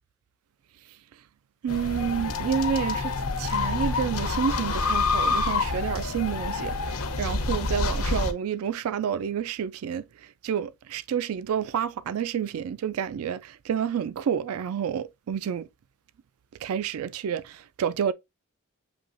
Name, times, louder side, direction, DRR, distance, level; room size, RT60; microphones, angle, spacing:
voice 1, 1.6-15.7 16.6-18.1, right 8 dB, 75° right, 0.3 m, -29 dB
sound 1, 1.7-8.3, left 3 dB, 75° left, 0.8 m, -27 dB
7.1 x 3.0 x 2.4 m
head